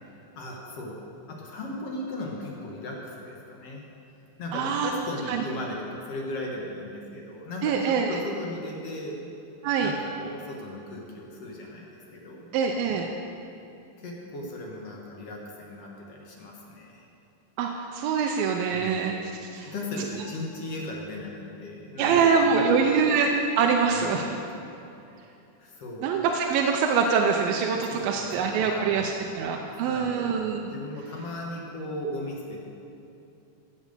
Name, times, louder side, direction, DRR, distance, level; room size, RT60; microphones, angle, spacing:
voice 1, 0.2-3.8 4.4-9.2 9.8-12.5 14.0-17.0 18.7-19.1 19.5-22.9 23.9-24.3 25.6-26.1 27.9-30.3 30.7-32.6, left 1 dB, 50° left, -2 dB, 2.2 m, -37 dB
voice 2, 4.5-4.9 5.3-5.4 7.6-8.2 9.6-9.9 12.5-13.1 17.6-19.7 22.0-24.3 26.0-30.6, right 5 dB, 90° right, 2 dB, 2.5 m, -24 dB
14.5 x 7.5 x 6.8 m, 2.7 s
omnidirectional pair, 4.2 m